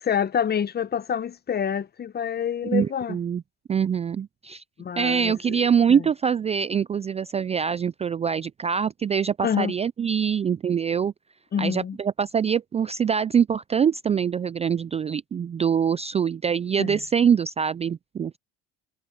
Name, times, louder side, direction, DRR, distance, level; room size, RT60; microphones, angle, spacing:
voice 1, 0.0-3.2 4.8-5.6 5.9-6.0 9.4-9.7 11.5-12.0 16.8-17.0, left 8 dB, 35° left, 0.9 m, -27 dB
voice 2, 2.6-3.4 3.7-4.6 5.0-11.1 11.6-18.4, right 7 dB, 20° right, 0.3 m, -24 dB
supercardioid pair, 85°, 30 cm